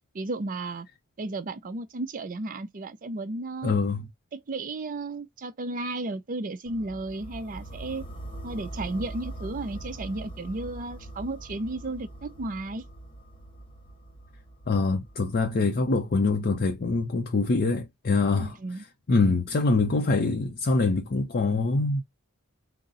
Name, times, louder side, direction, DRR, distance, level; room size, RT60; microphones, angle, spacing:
voice 1, 0.1-0.9 1.2-3.7 4.3-8.0 8.4-12.9 18.4-18.8, right 2 dB, 35° right, 0.5 m, -34 dB
voice 2, 3.6-4.1 14.7-18.5 19.1-22.0, left 3 dB, 40° left, 0.5 m, -24 dB
sound 1, 6.7-16.6, right 1 dB, 25° left, 0.9 m, -42 dB
4.0 x 2.0 x 3.7 m
head